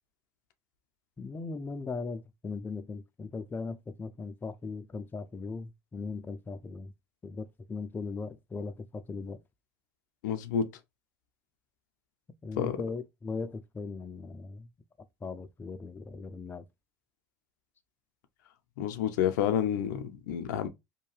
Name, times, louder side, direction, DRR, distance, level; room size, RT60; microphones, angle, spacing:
voice 1, 1.2-6.9 7.2-9.4 12.4-14.7 15.2-16.6, left 4 dB, 20° left, 0.4 m, -38 dB
voice 2, 10.2-10.7 12.6-12.8 18.8-20.7, left 9 dB, 75° left, 0.5 m, -29 dB
2.7 x 2.2 x 3.1 m
hypercardioid pair, 75°, 10 cm